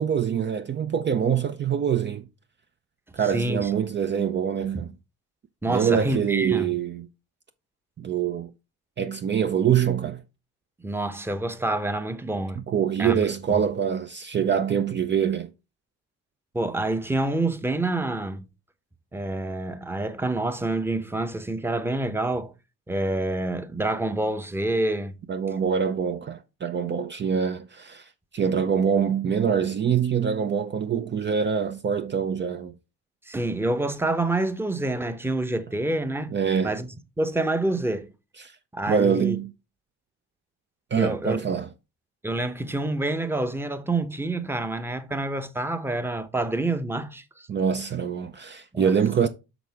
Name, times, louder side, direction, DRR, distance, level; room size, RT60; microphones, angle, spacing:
voice 1, 0.0-2.2 3.1-4.9 5.7-7.1 8.0-8.5 9.0-10.2 12.7-15.5 25.3-32.7 36.3-36.8 38.4-38.6 38.9-39.5 40.9-41.7 47.5-49.3, right 7 dB, 35° right, 0.6 m, -24 dB
voice 2, 3.3-4.0 4.7-4.8 5.6-6.7 10.8-12.6 13.0-13.2 13.5-13.6 16.5-18.4 19.1-22.5 22.9-25.2 33.3-36.4 36.6-36.9 37.2-38.1 38.7-39.4 41.0-41.4 42.2-47.5 48.7-48.9, right 2 dB, 10° right, 0.8 m, -27 dB
6.5 x 6.1 x 3.5 m
cardioid pair, 90°, 30 cm